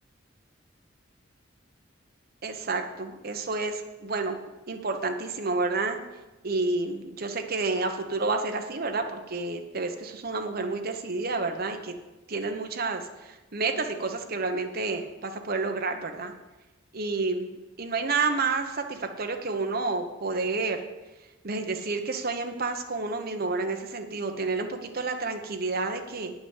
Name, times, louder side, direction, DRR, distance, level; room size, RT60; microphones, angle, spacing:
voice 1, 2.4-4.4 4.7-6.0 6.4-11.9 12.3-16.3 16.9-20.8 21.4-26.3, right 3 dB, 50° right, 5 dB, 1.1 m, -30 dB
9.3 x 6.0 x 7.3 m, 1.1 s
head